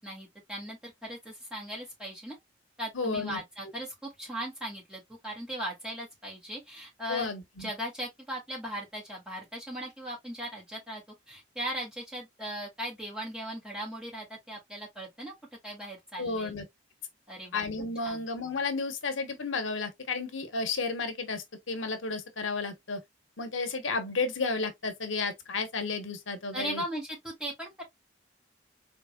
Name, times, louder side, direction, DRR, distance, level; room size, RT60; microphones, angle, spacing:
voice 1, 0.0-2.4 2.8-11.0 11.3-15.3 15.6-16.5 17.3-17.6 18.0-18.2 26.5-27.8, equal, 5° right, 2.2 m, -38 dB
voice 2, 2.9-3.4 7.1-7.7 16.2-16.7 17.5-23.0 23.4-26.8, left 3 dB, 90° left, 0.9 m, -32 dB
4.3 x 3.3 x 2.2 m
head